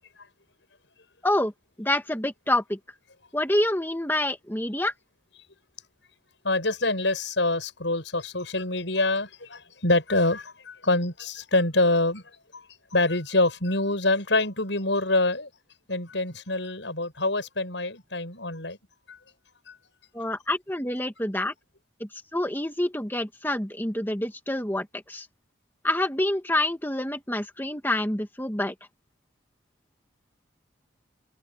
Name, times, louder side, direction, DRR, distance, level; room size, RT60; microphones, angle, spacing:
voice 1, 1.8-2.8 3.3-4.9 20.1-21.5 22.0-25.3 25.8-28.7, left 1 dB, 10° left, 2.0 m, -27 dB
voice 2, 6.4-12.2 12.5-12.6 12.9-15.5 15.9-18.8 19.1-19.2 19.7-19.8, left 2 dB, 70° left, 7.9 m, -25 dB
head